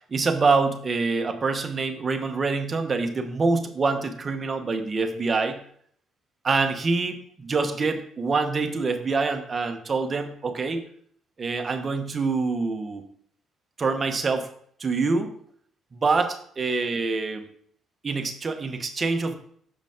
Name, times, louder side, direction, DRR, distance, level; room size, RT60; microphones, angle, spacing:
voice 1, 0.1-5.6 6.4-10.8 11.4-13.0 13.8-14.5 14.8-15.3 15.9-17.5 18.0-19.3, right 4 dB, 35° right, 6 dB, 1.0 m, -25 dB
6.6 x 5.1 x 3.6 m, 0.62 s
cardioid pair, 85°, 0 cm